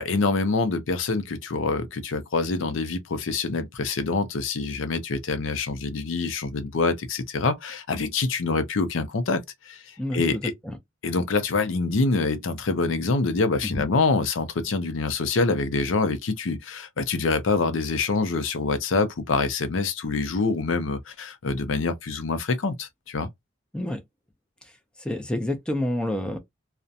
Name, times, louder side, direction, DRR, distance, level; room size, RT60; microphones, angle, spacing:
voice 1, 0.0-10.5 11.0-23.3, left 3 dB, 70° left, 0.5 m, -26 dB
voice 2, 10.0-10.8 13.6-13.8 23.7-24.0 25.0-26.4, left 1 dB, 5° left, 0.4 m, -28 dB
2.4 x 2.1 x 2.6 m
head